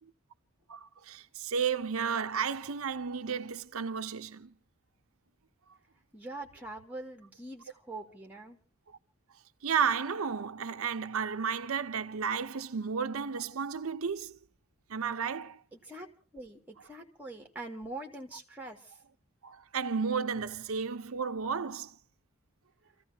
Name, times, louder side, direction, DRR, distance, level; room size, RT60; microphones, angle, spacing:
voice 1, 0.7-4.5 9.6-14.3 14.9-15.6 19.4-21.9, right 6 dB, 75° right, 0.7 m, -33 dB
voice 2, 6.1-8.6 15.7-19.0, right 2 dB, 5° right, 2.2 m, -44 dB
29.5 x 15.0 x 2.8 m
head